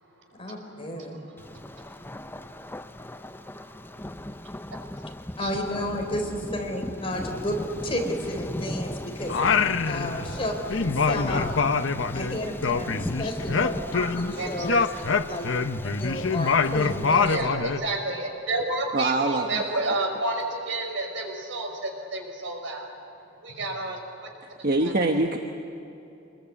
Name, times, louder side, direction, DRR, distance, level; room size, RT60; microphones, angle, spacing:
voice 1, 0.4-1.1 5.4-7.6 7.8-9.4 9.9-10.5 10.8-11.6 12.1-14.9 15.3-15.6 15.8-17.6, left 1 dB, 30° left, 2 dB, 4.0 m, -32 dB
voice 2, 0.9-5.5 9.3-9.4 9.8-10.4 14.4-15.2 17.2-22.9 23.4-24.0 24.8-24.9, right 2 dB, 75° right, 3 dB, 5.4 m, -32 dB
Thunder, 1.4-17.4, left 1 dB, 10° left, 0.6 m, -38 dB
Singing, 9.3-10.4 10.7-14.3 14.6-17.9, left 5 dB, 80° left, 0.9 m, -25 dB
voice 3, 18.9-19.6 24.4-25.4, right 2 dB, 50° right, 3 dB, 1.3 m, -24 dB
26.5 x 21.5 x 8.6 m, 2.8 s
head